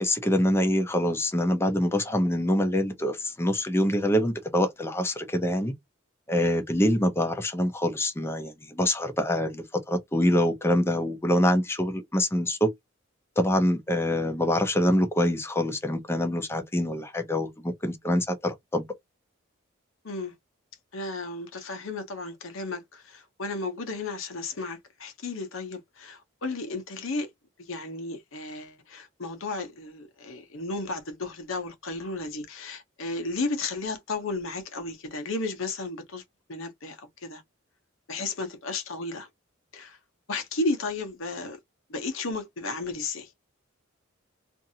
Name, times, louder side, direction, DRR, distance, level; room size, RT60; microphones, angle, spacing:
voice 1, 0.0-5.7 6.3-12.7 13.4-18.8, left 1 dB, 10° left, 0.5 m, -25 dB
voice 2, 20.9-27.3 27.6-36.2 36.5-37.4 38.1-39.3 39.7-40.0 40.3-41.6 41.9-43.3, left 3 dB, 75° left, 0.8 m, -33 dB
2.6 x 2.5 x 2.7 m
head